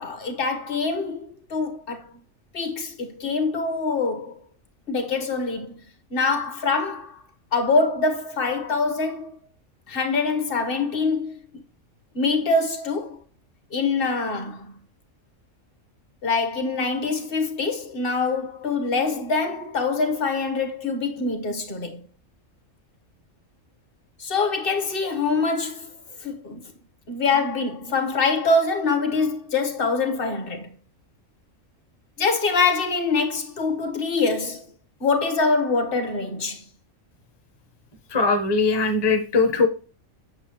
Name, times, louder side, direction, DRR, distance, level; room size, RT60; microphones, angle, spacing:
voice 1, 0.0-2.0 2.5-4.3 4.9-5.7 6.1-7.2 7.5-9.3 9.9-11.3 12.1-13.2 13.7-14.7 16.2-22.0 24.2-25.9 26.2-26.6 27.1-30.7 32.2-34.6 35.0-36.6, left 4 dB, 45° left, 1.3 m, -24 dB
voice 2, 38.1-39.7, left 3 dB, 20° left, 0.8 m, -20 dB
7.8 x 6.7 x 3.0 m
omnidirectional pair, 1.4 m